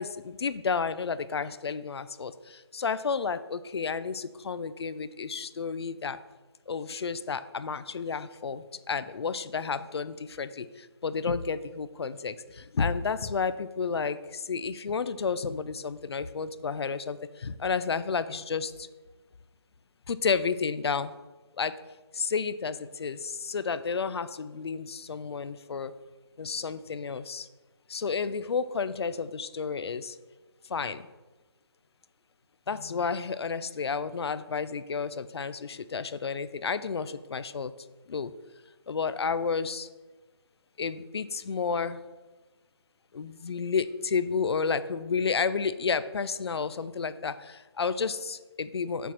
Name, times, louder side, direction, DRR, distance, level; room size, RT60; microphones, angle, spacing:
voice 1, 0.0-6.2 6.7-18.9 20.1-21.1 21.6-21.7 22.1-25.9 26.4-27.5 27.9-30.2 30.7-31.1 32.7-37.7 38.1-38.3 38.9-39.9 40.8-42.0 43.1-49.1, left 5 dB, 70° left, 14 dB, 0.5 m, -31 dB
6.8 x 4.2 x 6.0 m, 1.2 s
hypercardioid pair, 160°, 14 cm